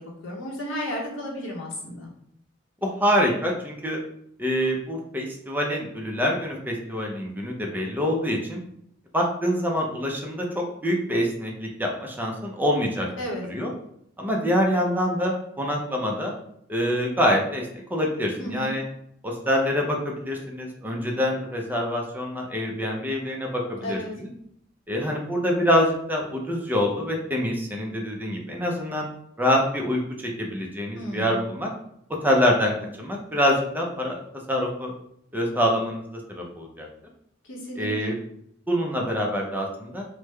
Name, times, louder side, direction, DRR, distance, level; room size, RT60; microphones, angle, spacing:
voice 1, 0.0-2.1 13.2-13.4 18.4-18.7 23.8-24.1 31.0-31.4 37.5-38.1, equal, 85° left, -2 dB, 0.9 m, -33 dB
voice 2, 2.8-4.0 4.4-8.6 9.1-13.1 13.5-13.7 14.2-16.3 16.7-17.6 17.9-18.8 19.2-24.3 24.9-29.1 29.4-31.7 32.2-34.2 34.5-34.9 35.3-36.0 36.3-36.9 37.8-38.1 38.7-40.1, equal, 10° right, 0 dB, 0.5 m, -25 dB
3.2 x 2.1 x 3.3 m, 0.72 s
head